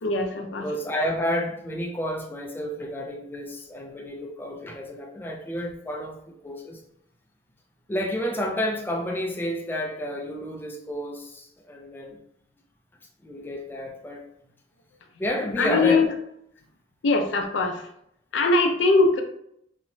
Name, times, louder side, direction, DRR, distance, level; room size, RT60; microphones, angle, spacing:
voice 1, 0.0-0.6 15.6-16.1 17.0-17.8 18.3-19.2, left 3 dB, 80° left, 4 dB, 0.4 m, -21 dB
voice 2, 0.6-6.8 7.9-12.2 13.2-14.2 15.2-16.0, equal, 10° left, 1 dB, 0.3 m, -30 dB
2.9 x 2.1 x 2.6 m, 0.74 s
head